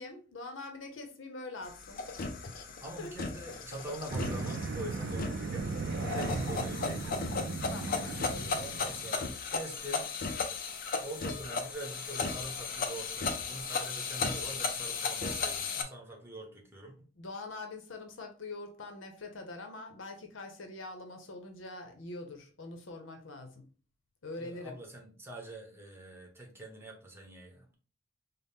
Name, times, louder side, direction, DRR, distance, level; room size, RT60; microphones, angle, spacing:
voice 1, 0.0-2.0 2.4-2.5 3.0-3.1 7.7-8.8 17.2-23.6 24.2-24.8, left 2 dB, 85° left, 0.7 m, -44 dB
sound 1, 1.6-15.8, left 4 dB, 50° left, 0.5 m, -36 dB
voice 2, 2.8-5.8 6.1-7.3 8.6-10.1 11.0-16.9 24.4-27.7, right 1 dB, 15° right, 0.9 m, -44 dB
sound 2, 4.1-9.1, right 3 dB, 65° right, 0.4 m, -36 dB
4.1 x 2.1 x 3.5 m
head